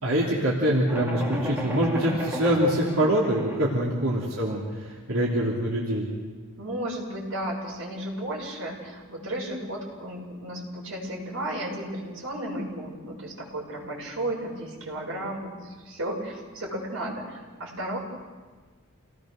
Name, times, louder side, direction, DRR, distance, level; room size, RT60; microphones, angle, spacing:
voice 1, 0.0-6.1, right 1 dB, 85° right, -5 dB, 3.3 m, -24 dB
sound 1, 0.9-3.8, equal, 10° right, 2.4 m, -33 dB
voice 2, 6.6-18.0, right 1 dB, 65° right, -2 dB, 7.0 m, -34 dB
28.5 x 19.0 x 6.6 m, 1.4 s
head